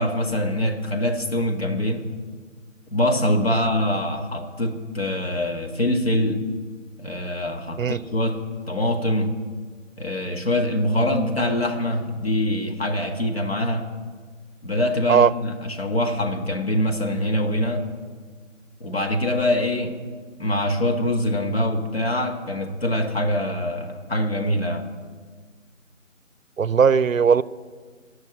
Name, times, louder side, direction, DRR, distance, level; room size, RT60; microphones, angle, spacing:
voice 1, 0.0-2.1 2.9-6.4 7.0-8.4 8.7-9.3 10.0-13.9 14.6-17.8 18.8-20.0 20.4-24.9, left 1 dB, 45° left, 4 dB, 1.8 m, -24 dB
voice 2, 26.6-27.4, right 6 dB, 75° right, 19 dB, 0.6 m, -17 dB
17.0 x 6.6 x 9.7 m, 1.6 s
figure-of-eight pair, 180°, 40 cm